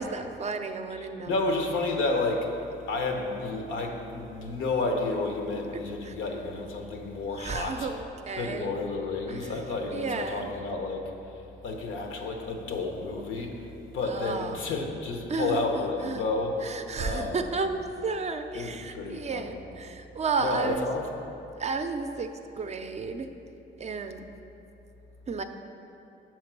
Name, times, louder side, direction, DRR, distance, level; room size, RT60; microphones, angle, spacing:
voice 1, 0.0-1.4 5.7-6.2 7.4-8.7 9.3-9.6 9.9-10.5 14.0-14.7 15.3-16.3 16.6-20.9 21.6-22.3 22.6-23.3 23.8-24.2 25.3-25.4, right 4 dB, 35° right, 7 dB, 0.4 m, -32 dB
voice 2, 1.0-2.5 2.9-7.9 8.4-11.0 11.6-13.5 13.9-16.6 17.0-17.4 18.5-19.6 20.4-21.0, left 3 dB, 80° left, 3 dB, 0.8 m, -31 dB
5.8 x 4.4 x 5.9 m, 2.9 s
cardioid pair, 90°, 20 cm